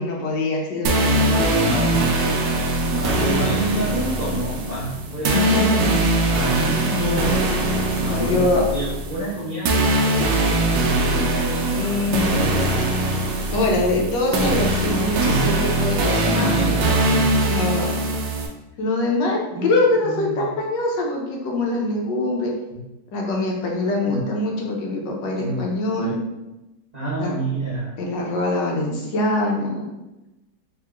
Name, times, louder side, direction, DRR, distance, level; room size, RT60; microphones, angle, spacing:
voice 1, 0.0-1.6 5.3-6.0 6.6-7.4 8.0-8.6 11.7-12.5 13.5-16.7 17.4-18.0 18.8-22.5 23.1-26.2 27.2-27.4 28.0-29.9, left 2 dB, 85° left, -1 dB, 1.5 m, -24 dB
sound 1, 0.9-18.5, right 2 dB, 90° right, 1.3 m, -21 dB
voice 2, 1.0-6.8 7.1-7.7 8.0-12.9 15.0-15.5 16.3-17.4 19.5-19.7 20.0-20.5 22.7-22.8 24.0-24.3 25.4-26.2 26.9-28.0, right 1 dB, 35° right, -9 dB, 0.7 m, -29 dB
3.6 x 3.0 x 3.5 m, 0.97 s
omnidirectional pair, 1.9 m